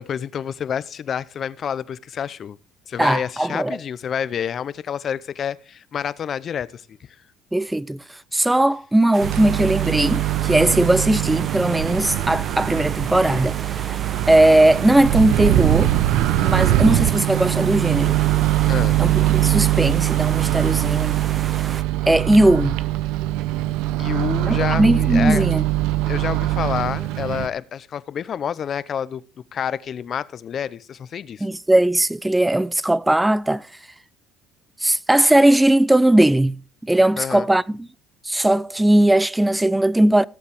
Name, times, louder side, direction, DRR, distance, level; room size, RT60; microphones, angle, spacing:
voice 1, 0.0-2.6 2.9-7.0 18.7-19.0 24.0-25.5 26.1-29.2 29.5-31.5 37.2-37.5, left 8 dB, 45° left, 0.7 m, -28 dB
voice 2, 3.0-3.8 7.5-8.0 8.3-13.6 14.3-15.9 16.4-18.2 19.0-21.2 22.1-22.8 24.5-25.6 31.4-33.7 34.8-37.9 38.3-40.2, right 1 dB, 10° right, 0.5 m, -18 dB
sound 1, 9.1-21.8, right 6 dB, 35° right, 0.8 m, -34 dB
Microwave oven, 9.2-27.5, right 15 dB, 80° right, 0.7 m, -22 dB
17.5 x 7.2 x 3.5 m
cardioid pair, 100°, 0 cm